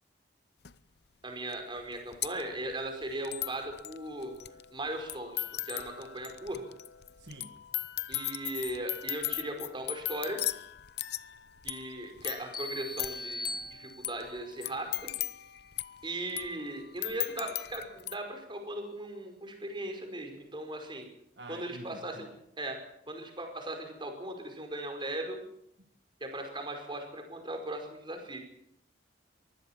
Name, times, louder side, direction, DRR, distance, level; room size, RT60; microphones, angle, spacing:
sound 1, 0.6-0.7 1.5-1.6 1.8-18.1, left 14 dB, 60° left, 0.8 m, -38 dB
voice 1, 1.2-4.3 4.7-6.6 8.1-10.4 11.6-15.1 16.0-21.1 21.5-22.3 22.6-22.8 23.1-25.4 26.2-28.4, right 1 dB, 25° right, 4 dB, 5.2 m, -38 dB
voice 2, 7.2-7.6 21.4-22.3, right 2 dB, 65° right, 5 dB, 2.0 m, -47 dB
sound 2, 12.5-14.4, left 2 dB, 25° left, 4.0 m, -40 dB
23.5 x 16.0 x 7.4 m, 0.75 s
head